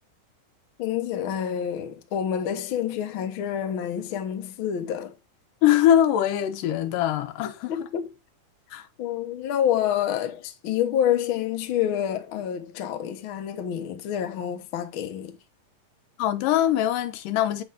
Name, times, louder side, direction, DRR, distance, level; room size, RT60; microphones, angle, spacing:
voice 1, 0.8-5.1 7.7-8.1 9.0-15.4, left 10 dB, 60° left, 1.4 m, -28 dB
voice 2, 5.6-7.7 8.7-8.9 16.2-17.6, left 11 dB, 90° left, 2.6 m, -22 dB
8.2 x 7.0 x 3.6 m
omnidirectional pair, 3.7 m